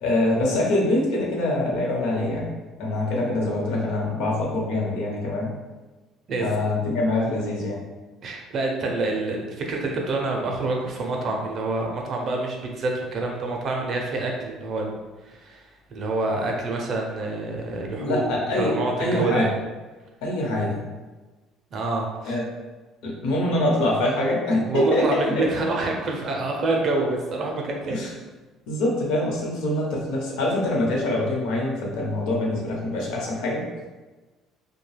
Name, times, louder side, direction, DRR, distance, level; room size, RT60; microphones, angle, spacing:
voice 1, 0.0-2.5 2.8-5.5 6.4-7.8 18.0-18.7 19.0-19.5 20.2-20.8 22.3-22.4 23.0-25.4 27.9-28.1 28.7-33.6, left 1 dB, 80° left, -2 dB, 0.8 m, -24 dB
voice 2, 8.2-14.9 15.2-15.6 15.9-19.4 21.7-22.4 24.7-28.1, right 2 dB, 35° right, 0 dB, 0.4 m, -27 dB
2.6 x 2.1 x 3.2 m, 1.2 s
cardioid pair, 180°, 0 cm